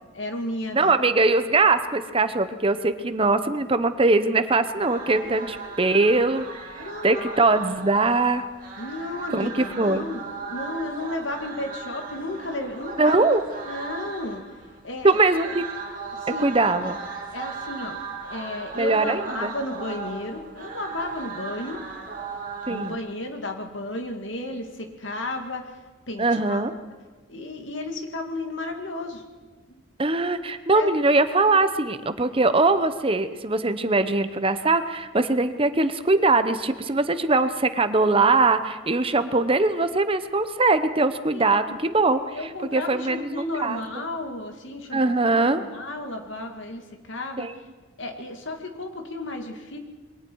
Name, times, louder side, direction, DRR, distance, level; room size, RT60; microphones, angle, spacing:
voice 1, 0.1-0.9 5.2-5.3 5.6-5.7 6.7-7.4 8.8-13.2 13.7-14.4 14.8-15.1 16.2-16.6 17.3-18.0 18.3-21.8 22.7-25.7 26.1-26.6 26.8-26.9 27.3-29.2 29.7-29.8 30.7-30.9 41.3-41.8 42.3-46.8 47.1-47.5 48.0-49.8, left 2 dB, 70° left, 4 dB, 2.3 m, -33 dB
voice 2, 0.7-8.5 9.3-10.0 13.0-13.4 15.0-15.6 16.4-17.0 18.7-19.5 22.7-23.0 26.2-26.7 30.0-43.8 44.9-45.6 47.4-47.6, right 3 dB, 30° right, 11 dB, 0.9 m, -22 dB
sound 1, 4.8-22.9, right 4 dB, 45° right, 2.8 m, -37 dB
27.0 x 22.5 x 4.7 m, 1.3 s
head